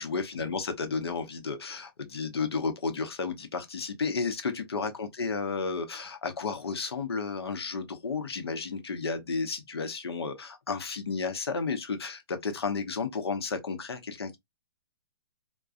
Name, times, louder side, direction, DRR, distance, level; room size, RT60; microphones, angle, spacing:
voice 1, 0.0-14.4, left 4 dB, 85° left, 0.8 m, -32 dB
2.3 x 2.2 x 2.4 m
hypercardioid pair, 145°, 13 cm